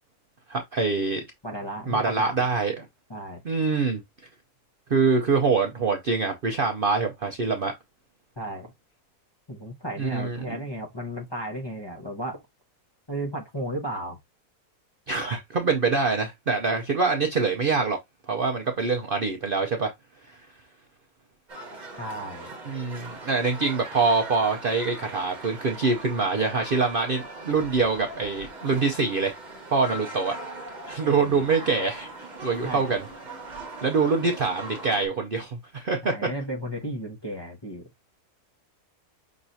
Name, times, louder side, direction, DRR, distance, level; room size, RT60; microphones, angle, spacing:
voice 1, 0.5-1.2 1.9-2.9 3.4-4.0 4.9-7.7 10.0-10.6 15.1-18.0 18.3-19.9 20.3-20.4 22.7-29.3 29.7-30.3 30.9-32.1 32.4-33.1 33.8-36.1, right 4 dB, 50° right, 0.6 m, -25 dB
voice 2, 1.4-2.5 3.1-3.4 8.4-8.7 9.5-12.4 13.1-14.2 22.0-22.5 31.2-31.4 32.6-33.0 36.0-37.9, right 1 dB, 20° left, 0.8 m, -34 dB
sound 1, 21.5-35.1, right 2 dB, 30° right, 1.2 m, -40 dB
5.9 x 3.1 x 2.7 m
omnidirectional pair, 1.7 m